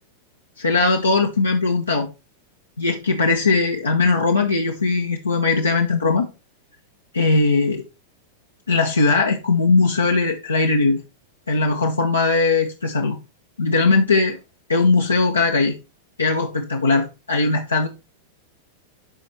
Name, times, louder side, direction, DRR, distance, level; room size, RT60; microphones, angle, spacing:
voice 1, 0.6-2.1 2.8-6.3 7.1-7.8 8.7-11.0 11.5-13.2 13.6-14.4 14.7-15.8 16.2-17.9, left 3 dB, 85° left, 0.9 m, -19 dB
11.5 x 4.3 x 3.3 m
figure-of-eight pair, 95°, 0 cm